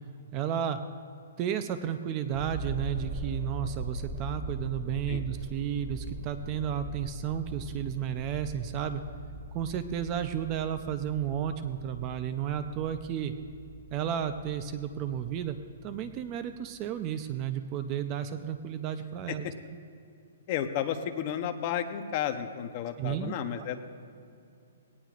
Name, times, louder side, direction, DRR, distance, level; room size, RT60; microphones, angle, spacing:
voice 1, 0.3-0.8 1.4-9.0 9.5-13.3 13.9-15.6 15.8-19.5 23.0-23.7, right 9 dB, 20° right, 10 dB, 0.5 m, -32 dB
sound 1, 2.3-16.5 17.1-17.2, right 1 dB, 45° right, 2.4 m, -41 dB
voice 2, 20.5-23.8, left 9 dB, 30° left, 7 dB, 0.7 m, -32 dB
20.0 x 18.0 x 2.5 m, 2.5 s
hypercardioid pair, 175°, 0 cm